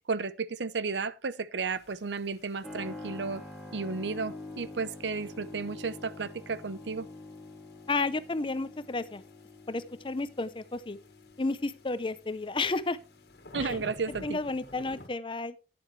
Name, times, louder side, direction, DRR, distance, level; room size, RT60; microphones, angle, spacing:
voice 1, 0.1-3.4 3.7-7.1 13.5-14.4, right 4 dB, 80° right, 0.7 m, -33 dB
sound 1, 1.7-15.1, left 1 dB, 65° left, 1.9 m, -53 dB
Keyboard (musical), 2.6-15.0, left 2 dB, ahead, 2.2 m, -47 dB
voice 2, 7.9-9.2 9.7-11.0 11.4-13.0 13.6-13.8 14.2-15.5, left 3 dB, 30° left, 0.6 m, -32 dB
11.5 x 9.5 x 3.2 m
head